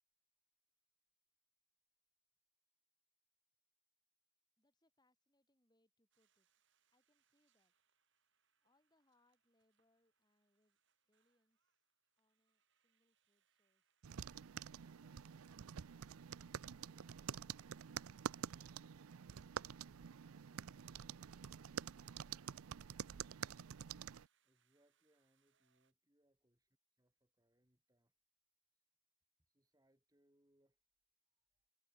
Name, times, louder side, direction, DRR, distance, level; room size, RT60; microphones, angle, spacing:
voice 1, 4.6-6.5 6.9-7.7 8.6-10.8 11.1-11.8 12.2-15.4 16.2-17.3, left 1 dB, 20° left, 6.8 m, -83 dB
sound 1, 6.1-25.9, right 9 dB, 55° right, 3.5 m, -85 dB
sound 2, 14.0-24.3, right 8 dB, 80° right, 0.5 m, -48 dB
voice 2, 24.4-28.1 29.5-30.8 31.4-31.6, right 1 dB, 15° right, 3.1 m, -79 dB
head